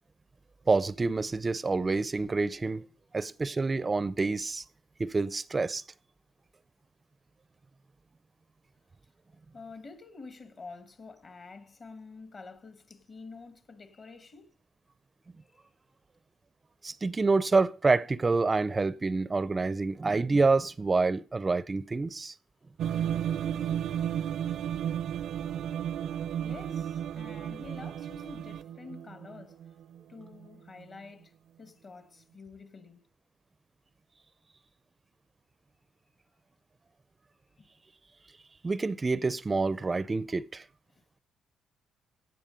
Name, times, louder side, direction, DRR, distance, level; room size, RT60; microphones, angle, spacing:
voice 1, 0.7-2.8 3.1-4.6 5.0-5.8 16.8-22.3 38.6-40.6, right 3 dB, 25° right, 0.5 m, -27 dB
voice 2, 9.5-14.5 15.5-15.7 26.4-29.6 30.1-33.0 37.6-37.7 40.9-41.0, left 4 dB, 45° left, 1.5 m, -48 dB
sound 1, 22.8-30.5, right 9 dB, 75° right, 0.5 m, -33 dB
16.0 x 7.4 x 5.1 m
cardioid pair, 90°, 0 cm